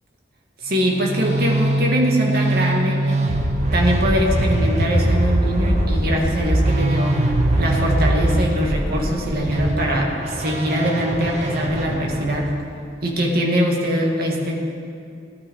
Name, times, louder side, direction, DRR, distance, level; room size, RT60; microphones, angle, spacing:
voice 1, 0.6-3.2 3.7-7.3 7.6-12.5 13.0-14.6, equal, 55° right, -1 dB, 2.3 m, -22 dB
sound 1, 0.7-12.5, right 1 dB, 40° right, 1.4 m, -22 dB
18.5 x 12.0 x 4.8 m, 2.4 s
head